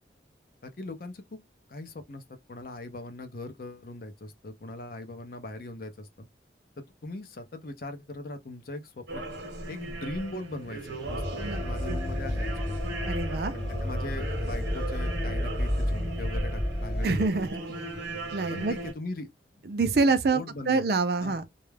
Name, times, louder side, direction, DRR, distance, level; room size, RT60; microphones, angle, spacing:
voice 1, 0.6-1.4 1.7-2.2 2.5-6.3 6.8-9.2 9.7-12.8 13.5-17.3 18.5-19.3 19.9-20.8 21.2-21.4, left 2 dB, 55° left, 0.5 m, -40 dB
sound 1, 9.1-18.9, right 2 dB, 85° right, 0.8 m, -38 dB
sound 2, 11.0-17.1, equal, 5° right, 1.0 m, -31 dB
voice 2, 13.1-13.5 17.0-17.6 18.3-18.7 19.7-21.5, right 3 dB, 60° right, 0.4 m, -26 dB
2.3 x 2.0 x 3.2 m
head